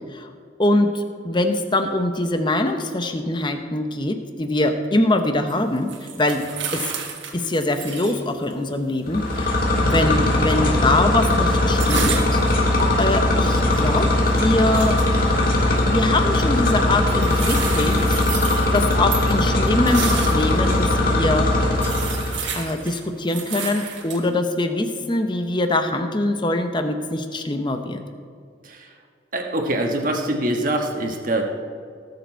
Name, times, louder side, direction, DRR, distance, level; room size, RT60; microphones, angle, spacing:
voice 1, 0.6-6.4 6.7-6.9 7.3-12.4 13.0-14.1 14.4-15.0 15.9-18.2 18.7-21.5 22.5-28.0, left 2 dB, 25° left, 7 dB, 0.8 m, -23 dB
sound 1, 5.5-8.2 8.5-8.6 11.7-12.6 13.5-14.1 14.6-15.1 17.0-20.8 21.3-21.4 21.7-24.2, right 6 dB, 70° right, 1.5 m, -31 dB
sound 2, 9.1-22.4, left 1 dB, 45° left, 1.8 m, -20 dB
voice 2, 9.7-10.1 28.6-28.9 29.3-31.4, right 1 dB, 45° right, 2 dB, 1.3 m, -24 dB
18.0 x 6.9 x 4.6 m, 2.3 s
head